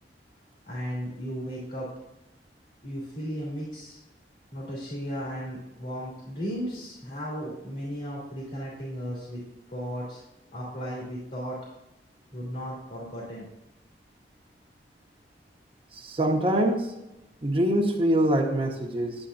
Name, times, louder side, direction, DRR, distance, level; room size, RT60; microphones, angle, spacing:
voice 1, 0.7-1.9 2.8-4.0 4.5-9.4 9.7-10.2 10.5-11.6 12.3-13.4, equal, 50° left, -5 dB, 2.8 m, -35 dB
voice 2, 15.9-16.9 17.4-19.2, right 1 dB, 30° right, 1 dB, 1.2 m, -24 dB
10.0 x 9.9 x 2.6 m, 0.94 s
head